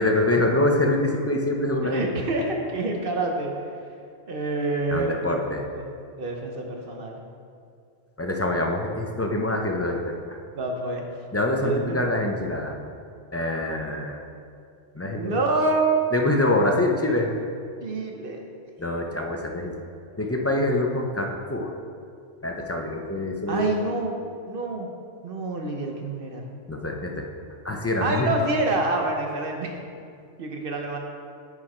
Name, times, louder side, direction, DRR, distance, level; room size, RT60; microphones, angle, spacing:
voice 1, 0.0-2.0 4.9-5.6 8.2-10.2 11.3-12.8 13.3-14.2 14.9-15.4 16.1-17.3 18.8-19.7 20.2-21.7 22.4-23.7 26.7-27.3 27.6-28.3, left 2 dB, 20° left, 2 dB, 0.3 m, -25 dB
voice 2, 1.8-3.5 4.3-5.5 6.2-7.2 10.5-11.0 11.6-12.0 15.1-15.9 16.6-16.8 17.8-18.5 23.5-24.1 24.5-24.9 25.2-26.5 28.0-29.7 30.4-31.0, right 2 dB, 55° right, 2 dB, 1.0 m, -27 dB
9.6 x 5.0 x 4.3 m, 2.3 s
omnidirectional pair, 1.2 m